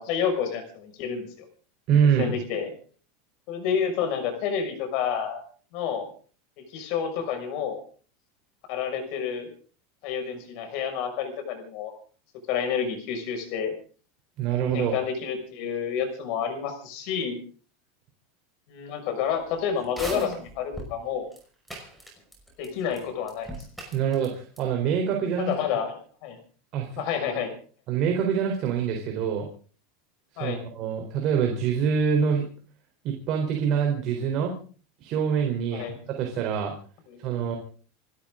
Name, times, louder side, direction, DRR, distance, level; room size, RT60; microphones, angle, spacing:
voice 1, 0.0-1.4 2.2-2.7 3.5-5.4 5.7-6.1 6.7-7.8 8.7-9.5 10.0-11.9 12.5-13.7 14.7-17.4 18.7-21.3 22.6-23.5 25.4-26.4 27.0-27.5 30.4-30.6 35.7-35.9 37.1-37.2, left 7 dB, 50° left, 6 dB, 6.0 m, -29 dB
voice 2, 1.9-2.3 14.4-15.0 23.9-25.5 26.7-27.0 27.3-27.4 27.9-29.5 30.4-32.4 33.0-34.5 35.0-35.9 36.2-36.7 37.2-37.6, right 7 dB, 40° right, 2 dB, 3.8 m, -25 dB
sound 1, 19.8-20.9 21.3-21.4 21.7-22.7 22.9-23.0 23.3-24.3 24.6-24.7, right 1 dB, ahead, 5.7 m, -36 dB
28.5 x 13.0 x 3.8 m, 0.41 s
supercardioid pair, 160°, 0 cm